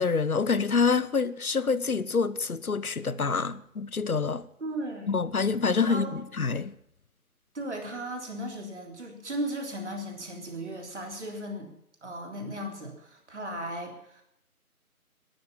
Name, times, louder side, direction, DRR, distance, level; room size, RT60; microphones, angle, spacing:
voice 1, 0.0-4.4 5.1-6.7, left 5 dB, 70° left, 1.0 m, -26 dB
voice 2, 4.6-5.2 5.9-6.1 7.5-11.7 12.0-14.2, right 1 dB, 50° right, 3.5 m, -36 dB
14.0 x 11.0 x 7.0 m
figure-of-eight pair, 170°, 45 cm